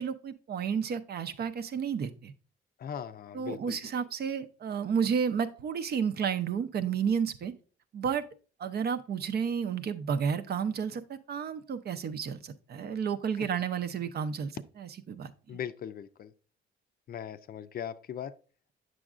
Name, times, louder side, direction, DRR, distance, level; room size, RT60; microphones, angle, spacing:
voice 1, 0.0-2.3 3.3-7.5 7.9-8.2 8.6-15.6, right 7 dB, 55° right, 10 dB, 0.6 m, -31 dB
voice 2, 2.8-3.8 13.4-13.5 15.5-16.3 17.1-18.3, left 9 dB, 50° left, 13 dB, 0.4 m, -39 dB
7.7 x 6.2 x 2.4 m, 0.38 s
cardioid pair, 90°, 20 cm